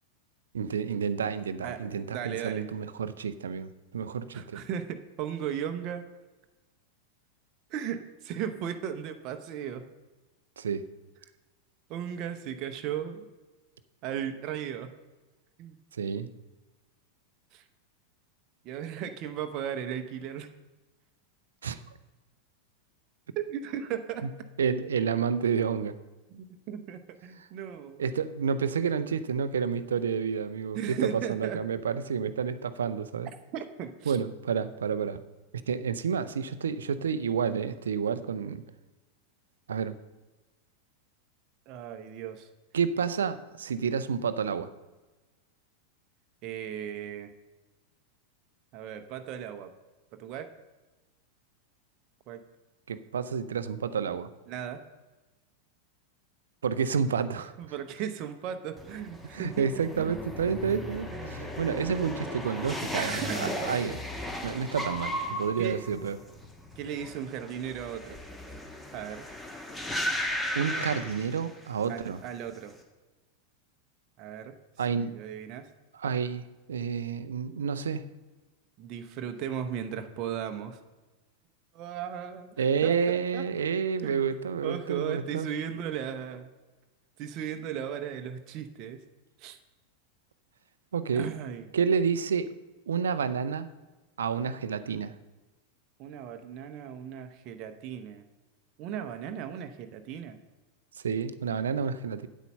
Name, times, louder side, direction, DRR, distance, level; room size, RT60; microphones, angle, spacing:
voice 1, 0.5-4.6 10.6-10.8 16.0-16.3 21.6-21.8 24.2-24.3 24.6-26.0 27.4-27.5 28.0-33.3 34.1-35.2 35.7-38.6 39.7-40.0 42.7-44.7 52.9-54.3 56.6-57.5 59.3-64.0 64.4-66.2 70.6-72.2 74.8-75.2 75.9-78.1 82.6-85.5 90.9-91.3 91.7-92.5 92.9-93.7 94.2-95.1 101.0-102.3, right 6 dB, 65° right, 13 dB, 0.5 m, -29 dB
voice 2, 2.1-2.6 4.3-6.0 7.7-9.8 11.9-13.2 14.0-14.9 15.6-15.8 17.5-17.6 18.6-20.5 23.4-24.3 26.3-28.0 30.7-31.6 33.5-34.2 41.7-42.5 46.4-47.3 48.7-49.7 50.2-50.5 52.3-52.4 54.5-54.8 57.6-59.7 60.0-60.2 61.1-61.5 62.8-63.8 65.6-65.9 66.8-68.2 68.9-69.3 71.9-72.7 74.2-74.5 74.9-75.7 78.8-80.8 81.7-82.5 82.8-83.4 84.0-86.5 87.2-89.0 89.4-89.6 91.1-91.7 96.0-98.2 98.8-100.4, right 9 dB, 40° right, 7 dB, 0.8 m, -36 dB
sound 1, 58.8-71.9 72.1-72.7, left 1 dB, 10° left, 1.4 m, -36 dB
9.2 x 8.2 x 5.5 m, 1.2 s
figure-of-eight pair, 90°, 0 cm